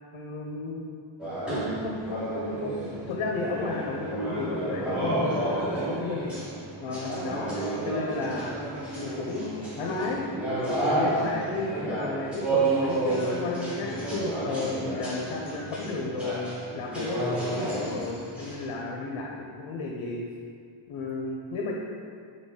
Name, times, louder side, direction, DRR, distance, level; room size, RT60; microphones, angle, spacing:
voice 1, 0.1-0.8 1.5-6.2 6.8-8.5 8.9-10.2 10.7-16.4 16.7-20.2 20.9-21.7, left 3 dB, 90° left, -1 dB, 0.6 m, -33 dB
sound 1, 1.2-18.7, right 2 dB, ahead, 1.1 m, -31 dB
4.0 x 3.5 x 3.5 m, 2.2 s
wide cardioid pair, 160°, 47 cm